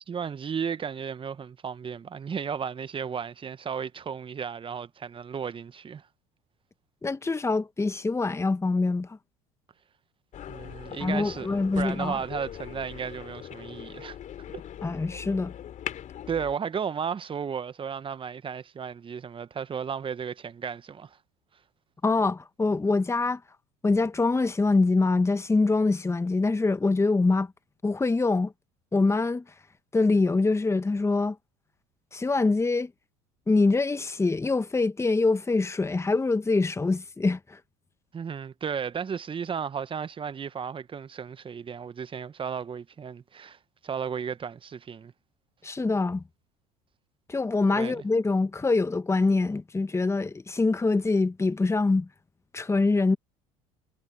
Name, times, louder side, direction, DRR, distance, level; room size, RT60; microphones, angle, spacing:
voice 1, 0.0-6.1 10.5-14.2 14.5-14.6 16.3-21.2 38.1-45.1 47.7-48.0, right 7 dB, 30° right, 1.2 m, -34 dB
voice 2, 7.0-9.2 11.0-12.2 14.8-15.5 22.0-23.4 23.8-27.5 27.8-28.5 28.9-29.4 29.9-31.4 32.1-32.9 33.5-37.6 45.6-46.2 47.3-52.1 52.5-53.2, left 3 dB, 15° left, 1.5 m, -24 dB
sound 1, 10.3-16.5, left 10 dB, 45° left, 3.6 m, -41 dB
hypercardioid pair, 70°, 18 cm